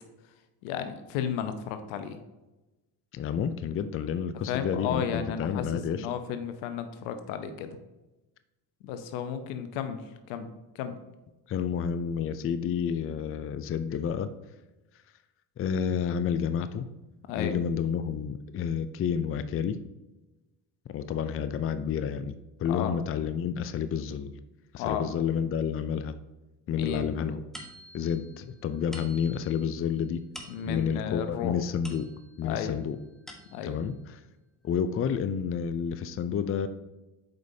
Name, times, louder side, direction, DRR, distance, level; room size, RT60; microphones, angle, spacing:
voice 1, 0.6-2.2 4.5-7.8 8.8-10.5 10.7-10.9 17.3-17.6 22.7-23.0 24.8-25.1 26.7-27.2 30.5-31.6 32.4-32.8 33.5-33.8, left 8 dB, 85° left, 9 dB, 0.8 m, -33 dB
voice 2, 3.1-6.1 11.5-14.3 15.6-16.8 17.4-19.8 20.9-22.3 22.6-24.3 24.7-26.1 26.7-27.4 27.9-30.2 30.7-32.1 32.4-33.0 33.6-33.9 34.6-36.7, left 7 dB, 30° left, 11 dB, 0.4 m, -30 dB
sound 1, 27.5-32.5 33.0-33.9, equal, ahead, 1.1 m, -49 dB
7.8 x 5.1 x 2.7 m, 1.1 s
supercardioid pair, 85°, 45 cm